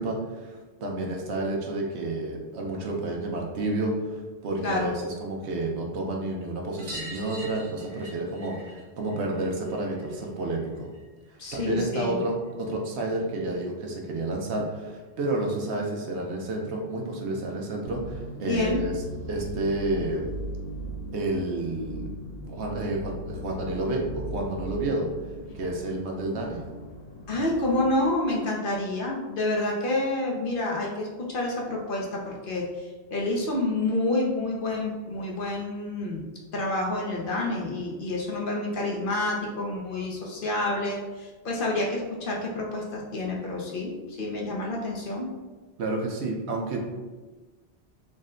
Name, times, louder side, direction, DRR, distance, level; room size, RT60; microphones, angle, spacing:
voice 1, 0.0-10.9 11.5-19.0 19.3-20.3 21.1-22.1 22.4-25.1 25.5-26.6 45.8-46.8, right 2 dB, 85° right, 0 dB, 1.0 m, -30 dB
sound 1, 6.8-11.9 12.2-13.3 14.7-14.8 15.0-15.1 15.4-15.5 16.8-16.9 17.2-17.3 17.6-17.7 18.9-19.0 19.8-19.9, equal, 40° right, 1.2 m, -45 dB
voice 2, 11.4-12.2 18.5-18.8 27.3-32.6 33.1-36.2 36.5-43.9 44.2-45.3, left 2 dB, 60° left, -2 dB, 0.8 m, -28 dB
sound 2, 17.8-28.0, equal, 85° left, 1.0 m, -38 dB
3.7 x 2.1 x 3.7 m, 1.3 s
omnidirectional pair, 1.1 m